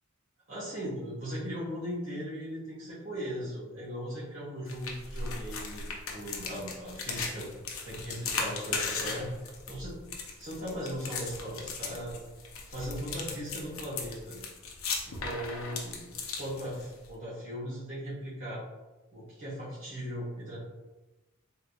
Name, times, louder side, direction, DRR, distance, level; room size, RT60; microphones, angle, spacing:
voice 1, 0.5-5.9 6.1-7.5 7.8-9.3 9.7-10.0 10.4-12.2 12.7-14.4 15.0-16.0 16.4-18.6 19.1-20.6, equal, 65° right, -10 dB, 1.4 m, -38 dB
sound 1, 4.7-17.1, left 4 dB, 70° left, 0.6 m, -37 dB
3.6 x 3.1 x 2.3 m, 1.1 s
head